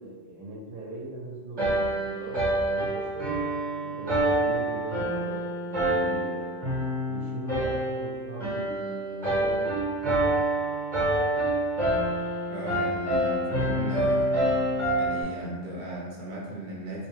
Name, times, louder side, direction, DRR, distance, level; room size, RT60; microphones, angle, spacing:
voice 1, 0.0-3.3 3.8-6.5 7.0-9.9, right 2 dB, 75° right, -5 dB, 1.0 m, -40 dB
sound 1, 1.6-15.2, right 1 dB, 30° right, 1.2 m, -27 dB
voice 2, 12.5-14.3 15.0-17.1, right 1 dB, 50° right, -5 dB, 0.9 m, -36 dB
2.8 x 2.2 x 3.1 m, 1.5 s
omnidirectional pair, 1.4 m